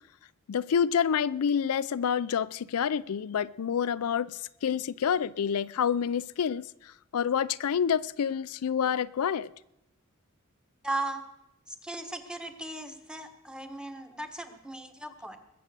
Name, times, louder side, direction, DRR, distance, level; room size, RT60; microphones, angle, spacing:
voice 1, 0.5-9.5, left 7 dB, 85° left, 0.4 m, -28 dB
voice 2, 10.8-11.2 11.7-15.4, right 2 dB, 5° right, 1.2 m, -37 dB
21.0 x 7.6 x 6.8 m
head